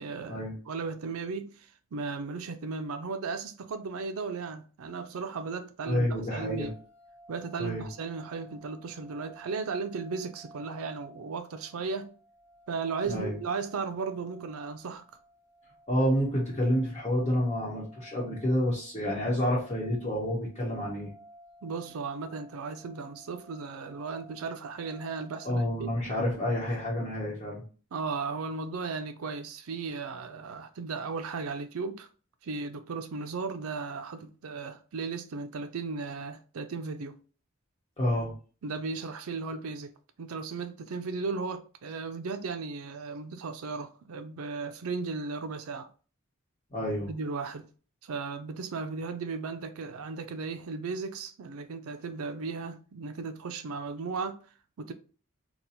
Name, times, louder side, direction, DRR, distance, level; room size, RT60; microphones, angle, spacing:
voice 1, 0.0-6.7 7.3-12.1 12.7-15.0 21.6-25.9 27.9-32.1 32.4-37.2 38.6-39.9 40.2-45.9 47.1-47.7 48.0-54.4 54.8-54.9, right 4 dB, 80° right, 0.5 m, -36 dB
voice 2, 5.8-6.7 7.6-7.9 13.0-13.4 15.9-21.1 25.4-27.6 38.0-38.3 46.7-47.1, equal, 25° left, 1.0 m, -29 dB
sound 1, 6.2-25.9, right 1 dB, 15° right, 1.2 m, -56 dB
2.9 x 2.2 x 4.0 m
head